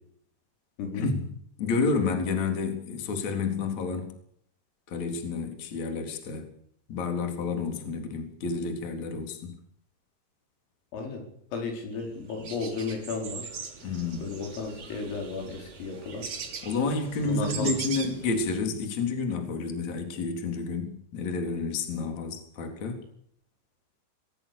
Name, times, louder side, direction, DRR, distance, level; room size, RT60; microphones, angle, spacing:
voice 1, 0.9-1.2 1.6-4.1 4.9-6.5 6.9-9.6 13.8-14.3 16.6-23.0, left 4 dB, 35° left, 4 dB, 4.5 m, -30 dB
voice 2, 10.9-11.3 11.5-13.5 14.2-16.3 17.2-17.8, left 4 dB, 80° left, 3 dB, 7.4 m, -33 dB
sound 1, 12.0-12.1 12.3-18.6, right 5 dB, 40° right, 3.8 m, -40 dB
27.5 x 19.5 x 7.0 m, 0.69 s
omnidirectional pair, 5.9 m